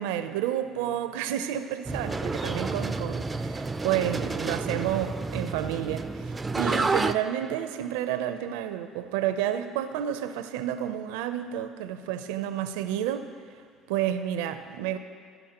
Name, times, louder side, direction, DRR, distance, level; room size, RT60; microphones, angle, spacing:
voice 1, 0.0-13.3 13.9-15.0, right 11 dB, 90° right, 9 dB, 0.4 m, -30 dB
sound 1, 1.9-7.1, right 3 dB, 20° right, 0.4 m, -30 dB
14.5 x 5.3 x 2.9 m, 2.2 s
supercardioid pair, 85°, 0 cm